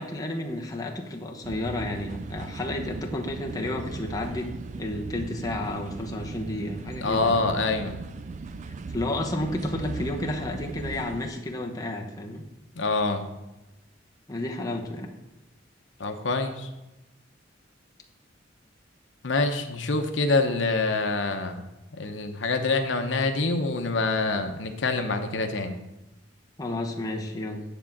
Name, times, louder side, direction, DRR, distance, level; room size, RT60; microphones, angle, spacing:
voice 1, 0.0-7.4 8.9-12.5 14.3-15.1 26.6-27.6, left 1 dB, 20° left, 0 dB, 1.0 m, -31 dB
sound 1, 1.4-11.3, right 3 dB, 40° right, 0.3 m, -38 dB
voice 2, 7.0-8.0 12.8-13.3 16.0-16.7 19.2-21.6 21.9-25.7, left 3 dB, 75° left, 5 dB, 0.9 m, -26 dB
10.0 x 3.7 x 7.3 m, 1.0 s
head